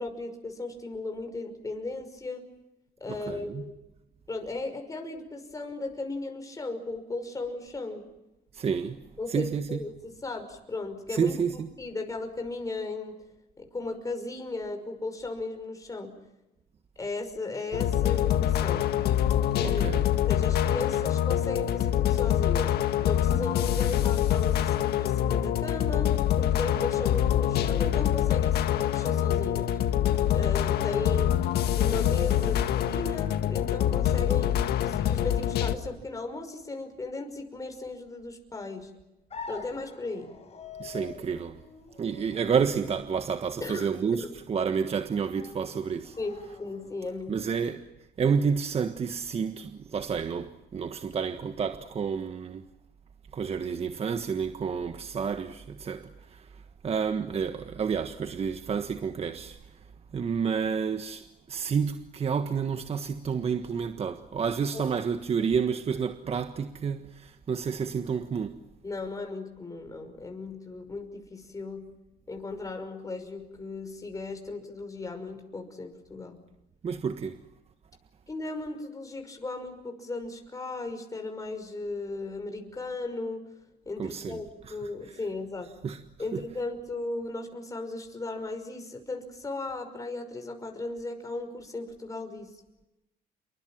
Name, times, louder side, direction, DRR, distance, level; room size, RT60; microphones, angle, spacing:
voice 1, 0.0-2.4 3.0-3.7 4.3-8.0 9.2-11.4 11.8-13.2 13.6-16.1 17.0-18.8 19.6-19.9 20.3-22.7 23.0-26.1 26.4-29.8 30.3-31.3 31.8-34.6 34.8-38.9 39.5-40.3 43.6-43.9 44.2-44.3 46.2-47.3 64.7-64.9 68.8-71.8 72.3-76.4 78.3-83.4 83.9-85.7 86.2-92.5, left 3 dB, 20° left, 5.7 m, -36 dB
voice 2, 3.1-3.6 8.5-9.0 9.3-9.8 11.1-11.7 19.6-20.1 31.1-31.3 40.8-41.6 42.0-46.2 47.3-47.9 48.2-52.7 53.3-59.8 60.1-68.6 76.8-77.4 84.0-84.7 85.1-85.2 85.8-86.0 86.3-86.4, right 6 dB, 35° right, 1.5 m, -30 dB
sound 1, 17.7-35.7, left 11 dB, 70° left, 1.8 m, -25 dB
sound 2, 39.3-47.3, left 4 dB, 35° left, 7.2 m, -46 dB
28.5 x 24.0 x 7.5 m
cardioid pair, 110°, 17 cm